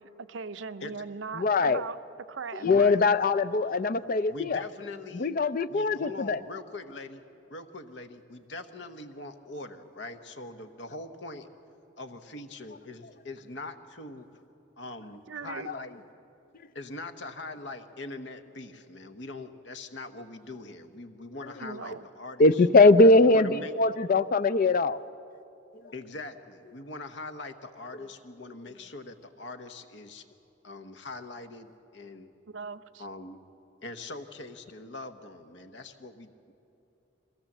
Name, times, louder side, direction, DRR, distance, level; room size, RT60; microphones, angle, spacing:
voice 1, 0.0-2.0 2.3-2.6 15.3-15.7 21.6-22.1 32.5-33.0, right 5 dB, 75° right, 12 dB, 0.6 m, -39 dB
voice 2, 1.4-1.8 2.6-4.6 5.1-6.4 22.4-25.0, left 3 dB, 45° left, 13 dB, 0.5 m, -21 dB
voice 3, 2.6-3.0 3.6-4.0 4.2-5.3 5.7-7.2 7.5-11.5 12.0-14.2 14.8-16.0 16.7-22.6 23.2-23.9 25.9-30.2 30.6-32.3 33.0-33.4 33.8-36.5, left 2 dB, 65° left, 8 dB, 1.1 m, -42 dB
22.0 x 17.0 x 7.4 m, 2.8 s
head